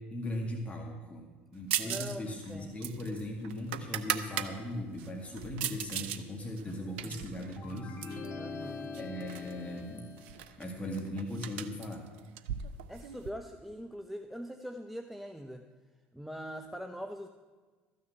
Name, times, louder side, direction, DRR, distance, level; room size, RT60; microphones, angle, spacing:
voice 1, 0.1-8.0 8.6-10.1 10.4-12.0, left 1 dB, 20° left, 1 dB, 2.0 m, -39 dB
sound 1, 1.7-2.2 2.4-4.5 5.0-6.2 6.6-8.3 8.9-9.5 9.8-9.9 10.2-13.3, right 11 dB, 75° right, 0.7 m, -37 dB
voice 2, 1.8-2.9 6.7-7.3 8.3-8.9 12.9-15.7 16.1-17.3, equal, ahead, 6 dB, 0.7 m, -43 dB
sound 2, 7.6-10.4, left 4 dB, 50° left, 2.1 m, -42 dB
13.5 x 6.5 x 8.2 m, 1.4 s
hypercardioid pair, 65°, 6 cm